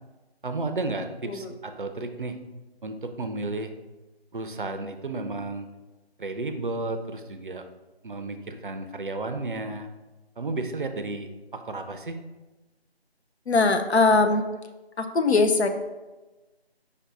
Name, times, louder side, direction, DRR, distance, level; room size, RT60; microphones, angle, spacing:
voice 1, 0.4-2.4 2.8-3.7 4.3-5.7 6.2-7.6 8.0-9.9 10.4-12.2, right 2 dB, 55° right, 7 dB, 0.5 m, -32 dB
voice 2, 13.5-14.4 15.0-15.7, left 3 dB, 90° left, 7 dB, 0.6 m, -21 dB
5.2 x 2.6 x 3.9 m, 1.1 s
figure-of-eight pair, 165°, 32 cm